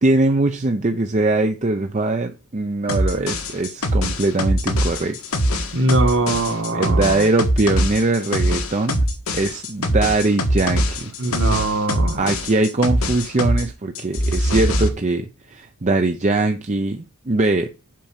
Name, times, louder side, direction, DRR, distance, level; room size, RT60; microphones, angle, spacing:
voice 1, 0.0-5.2 5.6-5.7 6.7-9.0 9.3-11.1 12.2-17.7, right 2 dB, 30° right, 0.6 m, -21 dB
sound 1, 2.9-13.7 13.9-14.9, equal, 70° left, 1.5 m, -22 dB
voice 2, 5.7-7.3 11.2-12.4, right 2 dB, 55° right, 1.5 m, -22 dB
7.5 x 5.0 x 7.2 m
head